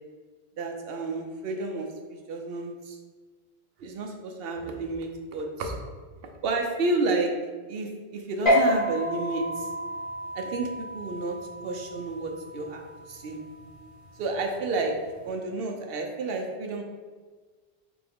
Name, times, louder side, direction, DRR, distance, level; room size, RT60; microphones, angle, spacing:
voice 1, 0.6-3.0 3.8-5.8 6.4-7.3 7.7-9.7 10.3-11.4 11.6-12.8 13.1-13.4 14.2-15.0 15.2-16.8, right 3 dB, 70° right, 3 dB, 0.8 m, -30 dB
sound 1, 8.5-15.2, left 1 dB, 30° left, 1.6 m, -30 dB
3.5 x 3.4 x 3.5 m, 1.4 s
omnidirectional pair, 1.1 m